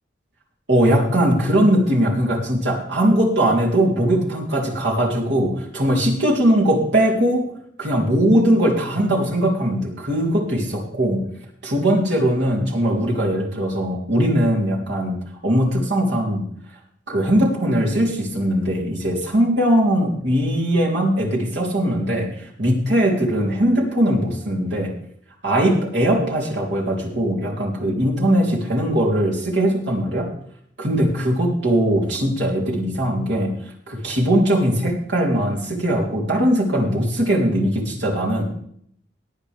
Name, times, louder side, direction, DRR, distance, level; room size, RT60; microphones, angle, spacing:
voice 1, 0.7-7.5 7.8-11.2 11.6-15.2 15.4-16.4 17.1-24.9 25.4-30.3 30.8-33.5 33.9-38.4, right 1 dB, 80° right, -2 dB, 3.4 m, -20 dB
18.0 x 8.9 x 3.5 m, 0.65 s
head